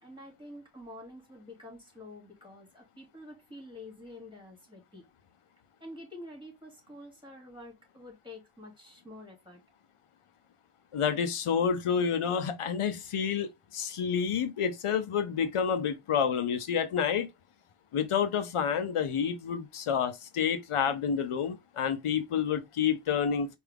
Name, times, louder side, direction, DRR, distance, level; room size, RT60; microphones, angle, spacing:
voice 1, 0.0-5.1 5.8-9.6, left 1 dB, 10° right, 2.7 m, -48 dB
voice 2, 10.9-17.3 17.9-23.6, left 7 dB, 80° left, 0.7 m, -29 dB
4.6 x 2.6 x 3.4 m
cardioid pair, 55°, 50 cm